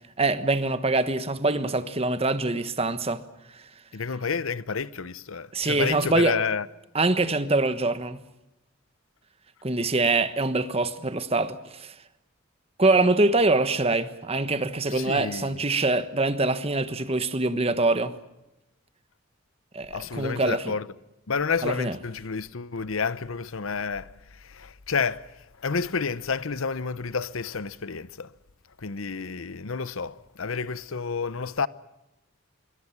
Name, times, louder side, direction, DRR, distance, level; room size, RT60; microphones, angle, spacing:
voice 1, 0.2-3.2 5.5-6.4 6.9-8.2 9.6-11.9 12.8-18.1 19.7-20.6 21.6-21.9, right 2 dB, 30° right, 1.3 m, -24 dB
voice 2, 3.9-6.7 14.9-15.6 19.9-20.9 21.3-28.3 28.8-31.7, left 5 dB, 75° left, 0.8 m, -30 dB
26.0 x 23.0 x 7.3 m
head